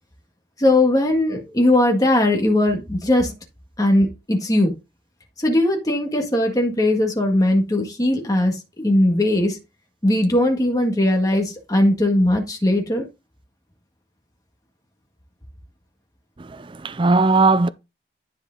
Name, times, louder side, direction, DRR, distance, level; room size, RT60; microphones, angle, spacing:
voice 1, 0.6-3.3 3.8-4.7 5.4-9.6 10.0-13.1, left 1 dB, 20° left, 1.7 m, -19 dB
voice 2, 16.4-17.7, right 3 dB, 25° right, 0.4 m, -18 dB
10.5 x 4.8 x 3.8 m
head